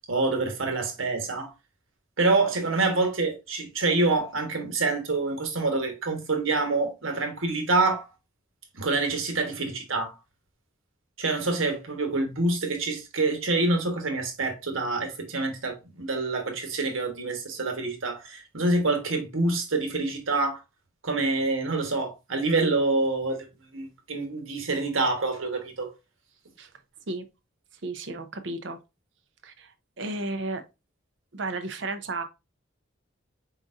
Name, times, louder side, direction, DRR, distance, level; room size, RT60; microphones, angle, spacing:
voice 1, 0.1-1.5 2.2-8.1 8.7-10.2 11.2-20.6 21.0-23.5 23.7-25.9, right 3 dB, 85° right, 1.3 m, -26 dB
voice 2, 27.8-28.8 29.4-30.6 31.3-32.2, right 2 dB, 60° right, 0.6 m, -33 dB
4.9 x 4.0 x 2.5 m
head